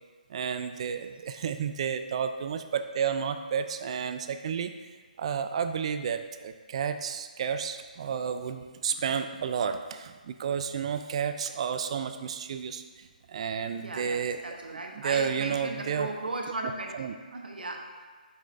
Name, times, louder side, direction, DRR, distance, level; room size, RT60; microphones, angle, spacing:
voice 1, 0.3-4.7 5.2-14.4 15.0-16.1 17.0-17.1, right 7 dB, 40° right, 9 dB, 0.3 m, -31 dB
voice 2, 13.8-17.0 17.3-18.1, right 2 dB, 85° right, 2 dB, 1.0 m, -37 dB
7.3 x 5.6 x 2.5 m, 1.4 s
hypercardioid pair, 150°, 5 cm